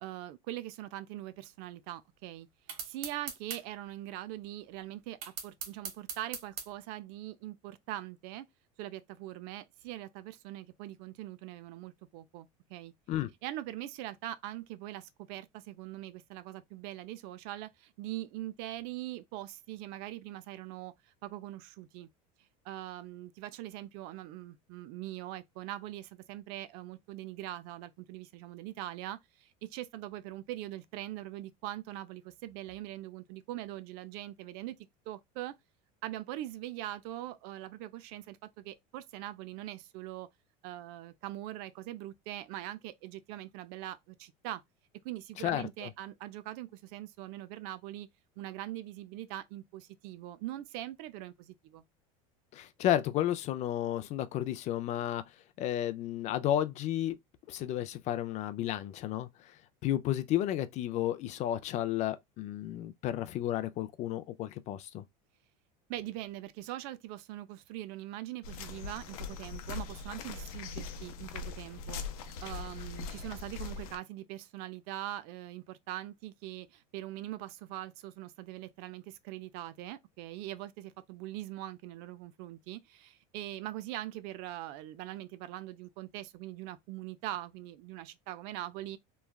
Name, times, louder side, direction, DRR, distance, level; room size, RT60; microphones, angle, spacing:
voice 1, 0.0-2.5 2.8-5.2 5.4-8.5 8.8-12.9 13.4-20.9 21.2-22.1 22.6-34.8 35.1-35.6 36.0-40.3 40.6-44.6 45.0-48.1 48.4-51.8 65.9-72.0 72.4-89.0, right 14 dB, 60° right, 0.5 m, -42 dB
sound 1, 2.7-3.6 5.2-6.7, right 6 dB, 80° right, 1.1 m, -39 dB
voice 2, 45.4-45.9 52.5-55.2 55.6-57.2 57.5-59.3 59.8-65.0, left 12 dB, 40° left, 0.4 m, -32 dB
sound 2, 68.4-74.0, left 5 dB, 80° left, 0.7 m, -41 dB
3.1 x 2.3 x 2.3 m
supercardioid pair, 130°, 18 cm